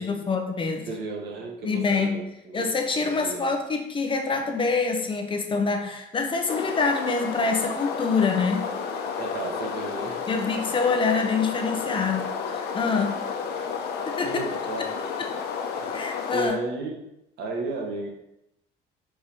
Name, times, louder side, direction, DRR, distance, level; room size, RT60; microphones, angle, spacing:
voice 1, 0.0-0.9 1.6-2.1 2.5-8.7 10.3-13.2 14.1-14.4 15.2-15.3 15.9-16.6, left 4 dB, 30° left, 4 dB, 0.9 m, -26 dB
voice 2, 0.9-2.7 3.0-3.5 9.2-10.2 14.2-15.0 15.8-16.0 16.3-17.0 17.4-18.1, right 3 dB, 75° right, 1 dB, 1.3 m, -33 dB
sound 1, 6.5-16.5, left 6 dB, 75° left, 0.8 m, -31 dB
4.9 x 4.6 x 4.3 m, 0.83 s
cardioid pair, 110°, 17 cm